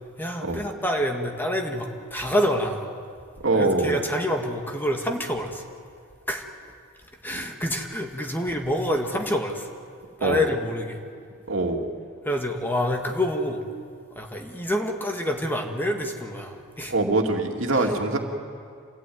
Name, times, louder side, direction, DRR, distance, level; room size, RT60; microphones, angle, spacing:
voice 1, 0.2-2.9 3.6-5.6 6.3-6.5 7.2-9.7 10.2-11.0 12.2-13.6 14.2-16.9 17.7-17.9, equal, 10° left, 2 dB, 1.9 m, -27 dB
voice 2, 3.4-4.0 7.3-7.5 10.2-10.4 11.5-11.9 16.9-18.2, right 2 dB, 70° right, 2 dB, 2.5 m, -23 dB
27.5 x 16.5 x 9.4 m, 2.2 s
head